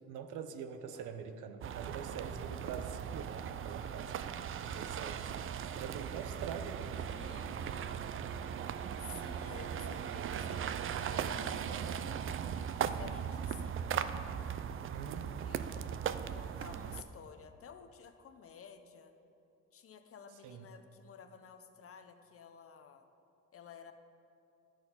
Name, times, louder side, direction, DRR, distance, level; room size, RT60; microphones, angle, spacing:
voice 1, 0.1-4.2 4.6-5.3 5.8-6.9 14.9-15.5 20.4-20.6, right 7 dB, 85° right, 8 dB, 0.7 m, -44 dB
sound 1, 0.9-1.4 1.9-2.2 2.8-3.0 3.7-4.0 4.5-4.8 5.4-5.7 6.4-6.7 7.3-7.8 8.3-8.6 9.2-9.7 10.2-10.6 11.2-11.6, right 1 dB, 15° right, 1.7 m, -63 dB
sound 2, 1.6-17.0, right 8 dB, 45° right, 0.4 m, -38 dB
voice 2, 7.1-8.0 9.0-10.7 11.0-13.8 15.3-19.1 19.7-23.1 23.5-23.9, left 7 dB, 50° left, 8 dB, 0.7 m, -53 dB
12.0 x 4.4 x 5.6 m, 2.7 s
cardioid pair, 90°, 30 cm